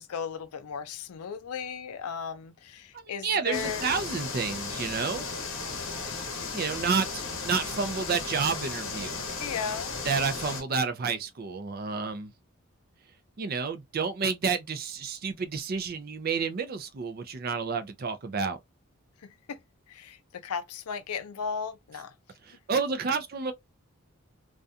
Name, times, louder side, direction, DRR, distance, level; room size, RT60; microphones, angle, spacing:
voice 1, 0.0-3.9 6.4-6.5 9.4-10.0 19.5-19.6 19.9-22.1, left 6 dB, 90° left, 0.4 m, -35 dB
voice 2, 2.9-5.3 6.5-9.2 10.0-12.3 13.4-18.6 22.4-23.5, right 5 dB, 45° right, 0.4 m, -30 dB
sound 1, 3.5-10.6, left 4 dB, 55° left, 0.8 m, -35 dB
2.4 x 2.2 x 2.6 m
head